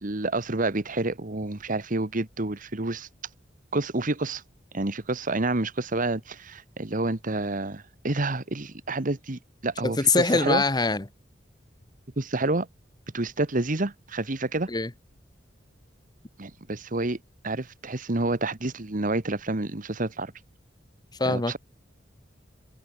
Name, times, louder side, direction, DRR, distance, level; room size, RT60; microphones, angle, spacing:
voice 1, 0.0-3.1 3.7-4.4 4.7-10.6 12.2-12.7 13.1-14.7 16.4-17.2 17.4-20.3 21.3-21.6, right 2 dB, 50° right, 1.5 m, -29 dB
voice 2, 9.8-11.0 14.7-14.9 21.2-21.6, left 3 dB, 25° left, 1.1 m, -23 dB
head